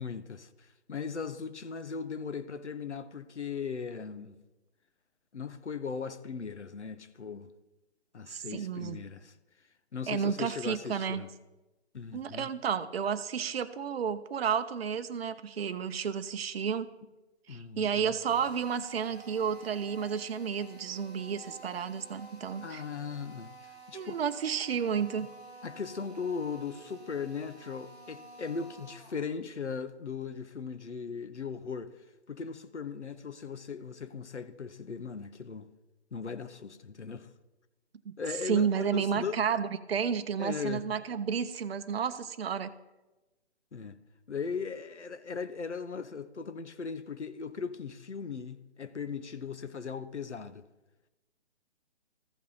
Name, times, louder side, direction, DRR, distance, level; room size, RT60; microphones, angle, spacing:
voice 1, 0.0-4.4 5.3-7.5 8.1-9.4 9.9-11.3 11.9-12.5 17.5-18.1 22.6-24.2 25.2-25.3 25.6-35.7 36.1-37.3 38.2-39.4 40.4-40.8 43.7-44.0 44.3-50.7, left 5 dB, 85° left, 0.8 m, -38 dB
voice 2, 8.3-9.0 10.1-11.3 12.1-16.9 17.5-22.8 23.9-25.3 38.0-38.2 38.4-42.7, right 7 dB, 60° right, 0.6 m, -31 dB
Drill, 18.2-29.3, right 2 dB, 65° left, 3.5 m, -51 dB
14.5 x 5.5 x 4.0 m
figure-of-eight pair, 140°, 34 cm